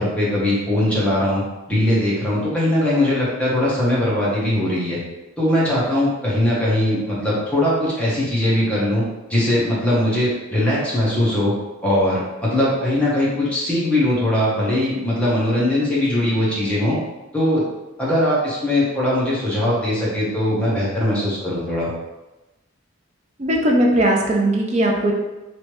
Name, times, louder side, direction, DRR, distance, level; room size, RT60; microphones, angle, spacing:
voice 1, 0.0-5.0 5.4-9.0 9.3-11.5 11.8-17.0 17.3-17.7 18.0-21.9, left 1 dB, 5° left, -8 dB, 0.9 m, -20 dB
voice 2, 23.4-25.1, right 1 dB, 30° right, 0 dB, 0.5 m, -18 dB
3.1 x 2.8 x 3.0 m, 1.1 s
head